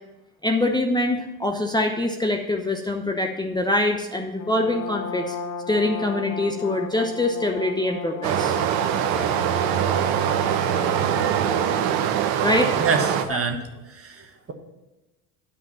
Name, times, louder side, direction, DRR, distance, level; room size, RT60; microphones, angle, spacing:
voice 1, 0.4-5.3 5.7-8.6 12.4-12.7 13.3-13.4, left 1 dB, 10° left, 2 dB, 0.9 m, -24 dB
Brass instrument, 4.4-12.1, left 5 dB, 75° left, 1.1 m, -35 dB
Stream, 8.2-13.2, right 9 dB, 70° right, 1.0 m, -23 dB
voice 2, 12.8-14.5, right 4 dB, 30° right, 5 dB, 1.5 m, -27 dB
9.9 x 5.3 x 7.5 m, 1.1 s
hypercardioid pair, 70°, 45 cm